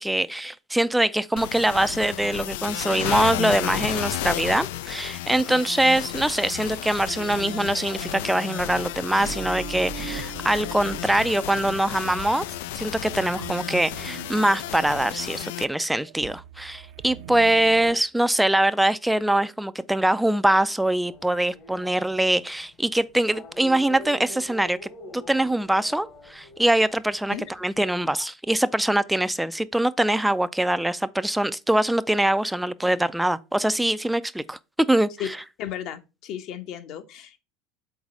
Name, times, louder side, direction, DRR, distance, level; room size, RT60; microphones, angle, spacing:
voice 1, 0.0-12.5 12.8-27.3 27.6-34.6 34.9-35.1, right 1 dB, 5° right, 0.4 m, -23 dB
sound 1, 1.4-15.6, left 14 dB, 75° left, 0.3 m, -33 dB
sound 2, 5.5-18.0, right 9 dB, 65° right, 0.7 m, -41 dB
sound 3, 21.1-22.6 23.3-27.2 27.8-28.2, left 1 dB, 40° left, 1.1 m, -44 dB
voice 2, 35.6-37.4, left 10 dB, 55° left, 1.0 m, -34 dB
4.8 x 4.0 x 5.2 m
supercardioid pair, 100°, 0 cm